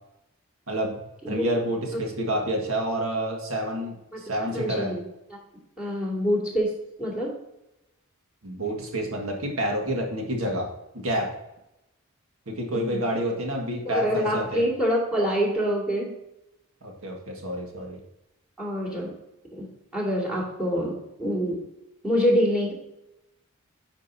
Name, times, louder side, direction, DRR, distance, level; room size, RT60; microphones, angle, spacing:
voice 1, 0.7-1.0 1.3-4.9 8.4-10.7 10.9-11.3 12.5-14.6 16.8-18.0, right 1 dB, 75° right, 1 dB, 1.7 m, -28 dB
voice 2, 4.5-5.0 5.8-6.7 7.0-7.3 12.7-13.0 13.8-16.1 18.6-19.1 19.5-19.7 19.9-21.6 22.0-22.7, equal, 5° right, -3 dB, 2.1 m, -25 dB
9.5 x 5.3 x 2.7 m, 0.89 s
head